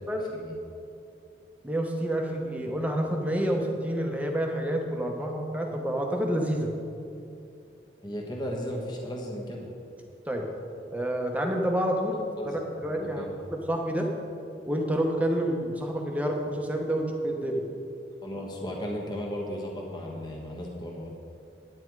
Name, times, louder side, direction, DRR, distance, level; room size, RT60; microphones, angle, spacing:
voice 1, 1.6-6.7 10.3-10.4 10.9-12.2 12.8-13.3 13.5-14.1 14.7-17.6, right 1 dB, 10° right, 1 dB, 1.0 m, -28 dB
voice 2, 8.0-9.7 12.4-12.6 13.0-13.3 18.2-21.1, equal, 25° left, -2 dB, 1.2 m, -35 dB
9.7 x 9.4 x 4.7 m, 2.6 s
head